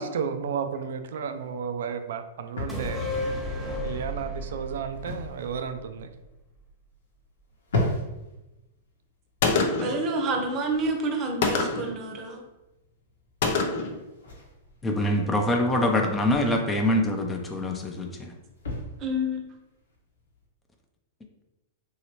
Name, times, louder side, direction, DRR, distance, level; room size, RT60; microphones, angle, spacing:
voice 1, 0.0-3.0 3.8-6.1, right 7 dB, 70° right, 8 dB, 0.4 m, -32 dB
sound 1, 0.7-20.5, left 2 dB, 80° left, 0.9 m, -39 dB
sound 2, 2.7-6.3 6.6-6.7, left 1 dB, ahead, 1.0 m, -33 dB
Gunshot gunfire, 9.4-10.0 11.4-11.9 13.4-14.0, left 4 dB, 60° left, 0.5 m, -25 dB
voice 2, 9.8-12.4 19.0-19.4, right 1 dB, 35° right, 2 dB, 0.7 m, -28 dB
voice 3, 14.8-18.3, left 1 dB, 15° left, 3 dB, 0.5 m, -24 dB
3.1 x 2.8 x 3.0 m, 0.98 s
hypercardioid pair, 115°, 0 cm